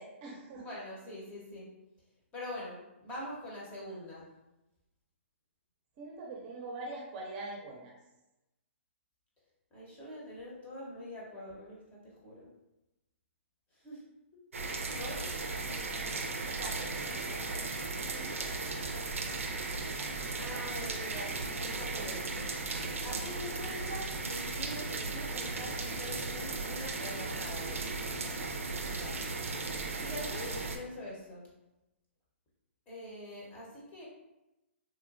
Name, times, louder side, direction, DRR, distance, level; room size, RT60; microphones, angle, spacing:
voice 1, 0.0-0.7 6.0-7.9 16.3-18.5, right 2 dB, 40° right, -1 dB, 0.6 m, -44 dB
voice 2, 0.6-1.7 2.3-4.2 9.7-12.5 13.7-14.0 14.5-14.6 14.9-15.2 20.4-21.3 21.6-22.5 23.0-27.8 28.8-29.2 30.0-31.5 32.9-34.1, left 1 dB, 20° left, -5 dB, 0.8 m, -44 dB
sound 1, 14.5-30.8, right 3 dB, 90° right, 0.4 m, -36 dB
3.0 x 2.1 x 2.5 m, 0.97 s
hypercardioid pair, 140°, 7 cm